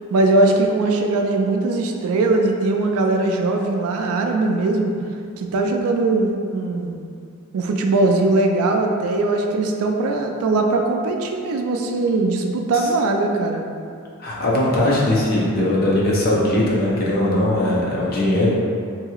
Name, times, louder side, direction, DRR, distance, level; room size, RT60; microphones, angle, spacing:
voice 1, 0.1-4.9 5.4-7.0 7.5-13.6, right 2 dB, 80° right, 3 dB, 0.3 m, -20 dB
voice 2, 14.2-18.5, left 1 dB, 45° left, -5 dB, 0.5 m, -19 dB
2.9 x 2.7 x 2.4 m, 2.3 s
head